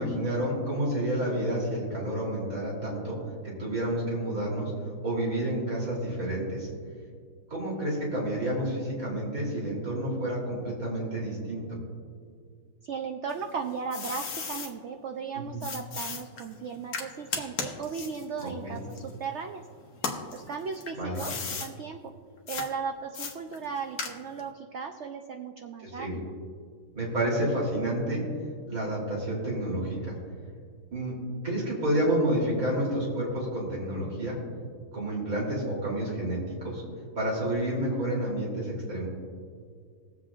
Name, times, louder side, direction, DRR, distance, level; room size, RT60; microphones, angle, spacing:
voice 1, 0.0-3.2 3.4-4.7 5.0-6.7 7.5-11.6 15.3-15.4 18.4-18.8 21.0-21.2 26.0-26.2 26.9-28.2 28.7-30.1 30.9-31.1 31.4-34.4 34.9-36.8 37.2-39.1, right 1 dB, 55° right, -4 dB, 3.6 m, -29 dB
voice 2, 12.8-19.7 20.3-22.1 22.5-26.3, right 5 dB, 80° right, 4 dB, 0.6 m, -36 dB
sound 1, 13.3-14.7 15.6-19.5 19.9-21.7 22.5-22.7 23.1-24.5, left 5 dB, 60° left, 1.4 m, -36 dB
22.0 x 7.8 x 2.4 m, 2.1 s
omnidirectional pair, 1.8 m